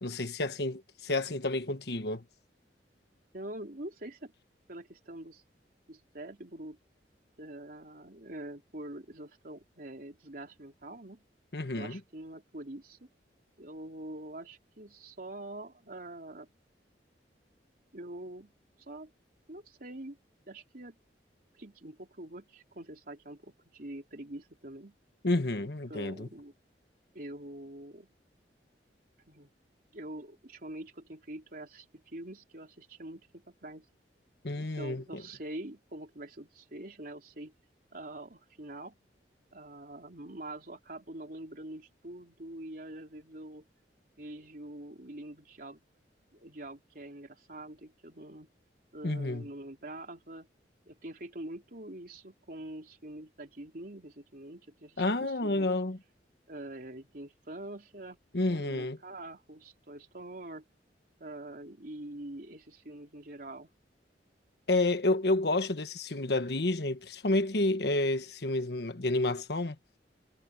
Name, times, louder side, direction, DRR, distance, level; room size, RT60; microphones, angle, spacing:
voice 1, 0.0-2.2 11.5-12.0 25.2-26.3 34.4-35.2 49.0-49.5 55.0-56.0 58.3-59.0 64.7-69.8, left 2 dB, 65° left, 1.4 m, -30 dB
voice 2, 3.3-4.3 4.7-5.4 5.9-6.8 7.4-11.2 11.6-13.0 13.6-16.5 17.9-18.5 18.8-19.1 19.5-20.2 20.5-21.0 21.5-25.0 25.6-26.5 27.1-28.1 29.3-29.5 29.9-33.9 34.6-37.5 37.9-39.0 39.5-43.6 44.2-45.8 46.3-48.5 48.9-50.5 50.9-55.7 56.5-58.2 58.5-60.6 61.2-63.7, right 1 dB, 55° right, 3.7 m, -45 dB
head